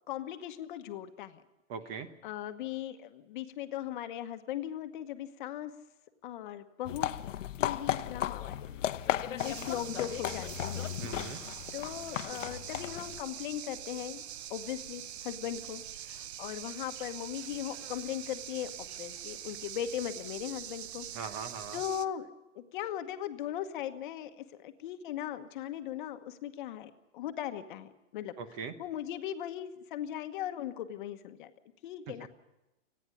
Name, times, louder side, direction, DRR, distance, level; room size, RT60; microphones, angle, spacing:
voice 1, 0.1-1.4 2.2-5.7 6.2-10.9 11.7-14.2 14.5-18.7 19.0-21.3 21.7-22.3 22.5-28.3 28.8-31.5 31.8-32.3, left 11 dB, 40° left, 8 dB, 1.2 m, -39 dB
voice 2, 1.7-2.1 11.0-11.4 21.1-21.8 28.4-28.7, right 6 dB, 25° right, 10 dB, 1.1 m, -40 dB
sound 1, 6.9-13.2, left 11 dB, 75° left, 1.0 m, -35 dB
sound 2, 9.4-22.1, right 10 dB, 55° right, 0.8 m, -44 dB
29.5 x 9.9 x 9.7 m, 0.99 s
hypercardioid pair, 165°, 38 cm